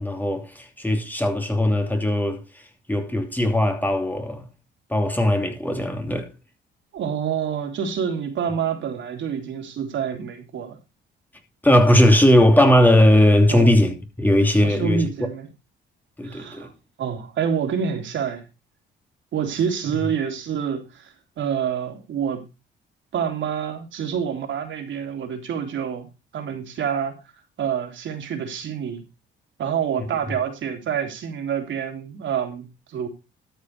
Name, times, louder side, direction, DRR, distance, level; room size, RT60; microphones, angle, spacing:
voice 1, 0.0-2.4 2.9-4.5 4.9-6.3 11.6-15.1 16.2-16.7, left 1 dB, 10° left, 2.9 m, -18 dB
voice 2, 6.9-10.8 13.5-13.7 14.6-15.5 16.2-16.7 17.0-18.4 19.3-22.4 23.1-26.1 26.3-27.2 27.6-29.0 29.6-33.1, right 7 dB, 70° right, 3.4 m, -27 dB
13.0 x 6.9 x 4.6 m
cardioid pair, 90°, 20 cm